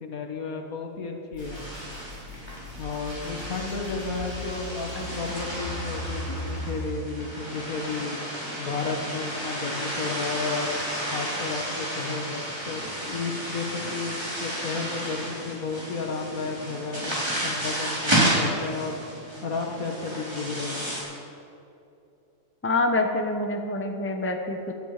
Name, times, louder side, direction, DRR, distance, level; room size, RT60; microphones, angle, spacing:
voice 1, 0.0-1.6 2.8-8.2 8.6-10.8 11.1-17.2 17.4-19.0 19.4-20.9, left 4 dB, 80° left, 2 dB, 2.0 m, -33 dB
sound 1, 1.3-6.9, left 1 dB, 60° left, 3.5 m, -38 dB
sound 2, 1.4-21.0, right 1 dB, 20° right, 4.2 m, -32 dB
voice 2, 22.6-24.7, left 2 dB, 10° left, 4 dB, 1.0 m, -26 dB
17.5 x 12.0 x 5.0 m, 2.7 s
omnidirectional pair, 1.5 m